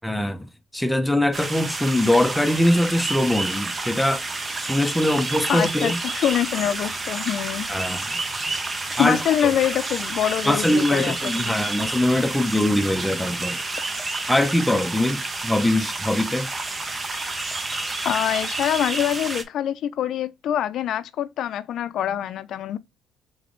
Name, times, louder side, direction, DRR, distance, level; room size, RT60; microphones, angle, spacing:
voice 1, 0.0-0.5 0.7-4.2 4.6-6.0 7.7-8.1 9.0-9.5 10.5-13.6 14.3-16.5, left 1 dB, 5° left, 0.7 m, -22 dB
sound 1, 1.3-19.4, right 3 dB, 30° right, 0.8 m, -29 dB
voice 2, 5.5-7.7 9.0-11.6 18.0-22.8, left 10 dB, 65° left, 0.5 m, -25 dB
3.9 x 3.4 x 3.7 m
cardioid pair, 85°, 0 cm